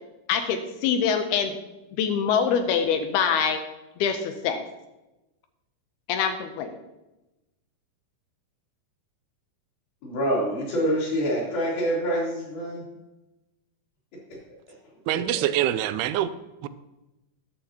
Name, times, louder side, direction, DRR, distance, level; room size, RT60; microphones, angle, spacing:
voice 1, 0.3-1.6 2.0-3.6 4.0-4.6 6.1-6.7, left 7 dB, 80° left, 7 dB, 2.7 m, -24 dB
voice 2, 10.0-12.8 14.3-14.4 15.3-15.5, equal, 65° left, -5 dB, 5.2 m, -26 dB
voice 3, 15.1-16.3 16.6-16.7, right 12 dB, 85° right, 13 dB, 2.6 m, -25 dB
13.5 x 10.0 x 2.9 m, 1.0 s
omnidirectional pair, 4.6 m